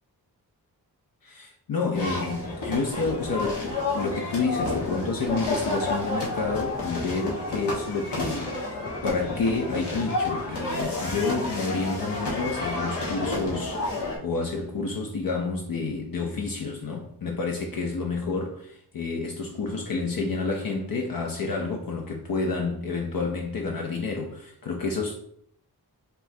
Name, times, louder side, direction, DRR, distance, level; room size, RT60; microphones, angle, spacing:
voice 1, 1.2-25.2, left 4 dB, 60° left, 0.6 m, -29 dB
sound 1, 1.9-14.2, left 2 dB, 90° left, 1.5 m, -30 dB
5.3 x 3.1 x 2.7 m
wide cardioid pair, 110°, 39 cm